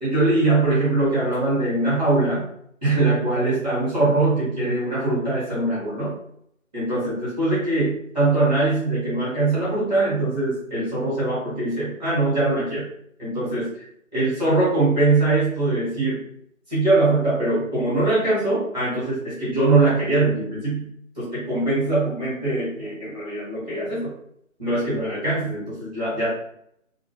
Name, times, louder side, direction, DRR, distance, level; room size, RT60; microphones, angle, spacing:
voice 1, 0.0-2.4 2.8-6.1 6.7-12.8 13.2-13.7 14.1-16.2 16.7-20.9 21.2-24.1 24.6-26.3, right 2 dB, 10° left, -10 dB, 0.9 m, -22 dB
2.2 x 2.0 x 3.0 m, 0.69 s
figure-of-eight pair, 160°, 40 cm